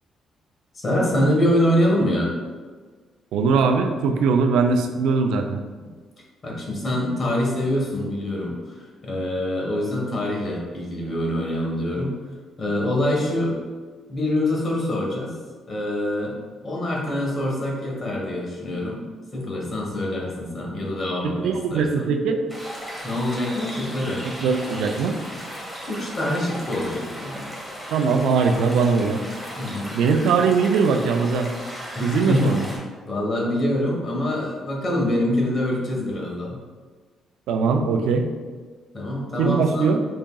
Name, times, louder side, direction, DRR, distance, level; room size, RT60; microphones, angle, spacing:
voice 1, 0.7-2.3 6.4-12.2 12.6-13.6 14.1-15.3 15.7-16.4 16.6-19.0 19.3-22.1 23.0-24.2 25.9-27.5 29.6-29.9 31.9-32.6 33.0-36.6 38.9-40.0, left 1 dB, 40° left, -2 dB, 1.3 m, -25 dB
voice 2, 3.3-5.6 21.2-22.4 24.2-25.2 27.9-29.2 29.9-31.5 32.0-32.6 37.5-38.3 39.4-40.0, right 5 dB, 85° right, 5 dB, 0.4 m, -21 dB
sound 1, 22.5-32.8, equal, 10° left, 1.3 m, -36 dB
4.9 x 3.6 x 2.3 m, 1.4 s
cardioid pair, 90°, 0 cm